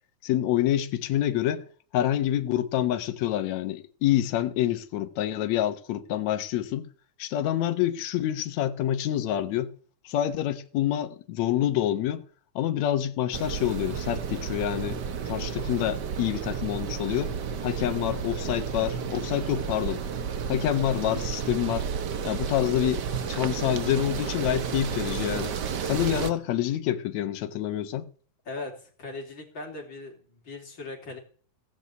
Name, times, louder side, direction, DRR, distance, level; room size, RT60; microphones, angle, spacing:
voice 1, 0.2-1.6 1.9-6.8 7.2-9.7 10.0-12.2 12.6-15.0 15.3-17.3 17.6-20.0 20.5-21.9 22.2-25.5 25.8-28.1, left 12 dB, 70° left, 2.3 m, -27 dB
sound 1, 13.3-26.3, right 7 dB, 75° right, 0.9 m, -32 dB
voice 2, 28.5-31.2, left 3 dB, 40° left, 4.1 m, -39 dB
17.0 x 7.0 x 8.1 m
omnidirectional pair, 3.5 m